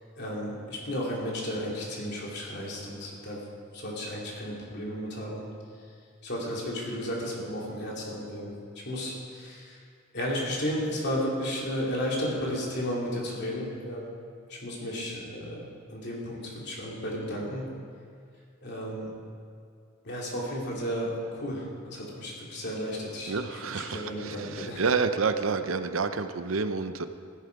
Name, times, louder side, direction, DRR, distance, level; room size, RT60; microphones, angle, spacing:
voice 1, 0.2-3.4 3.7-5.4 6.2-8.5 8.8-9.8 10.1-14.1 14.5-15.6 15.9-17.7 18.6-19.1 20.0-24.8, equal, 60° left, -3 dB, 3.0 m, -33 dB
voice 2, 23.3-27.0, right 4 dB, 85° right, 10 dB, 0.7 m, -29 dB
15.0 x 11.0 x 4.7 m, 2.4 s
head